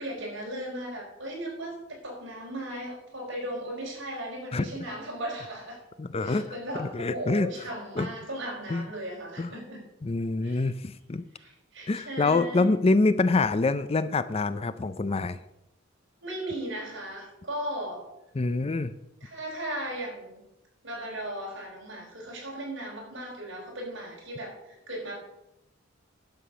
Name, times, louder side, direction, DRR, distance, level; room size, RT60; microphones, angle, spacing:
voice 1, 0.0-5.8 6.2-9.8 10.4-10.7 11.3-12.7 16.2-18.0 19.2-20.4 20.8-25.2, right 1 dB, 60° right, -2 dB, 5.0 m, -37 dB
voice 2, 6.0-6.5 6.8-7.5 8.0-8.1 8.7-8.9 9.4-9.5 10.0-11.2 11.9-15.4 18.4-18.9, left 3 dB, 30° left, 13 dB, 0.4 m, -25 dB
11.5 x 6.8 x 6.9 m, 0.88 s
head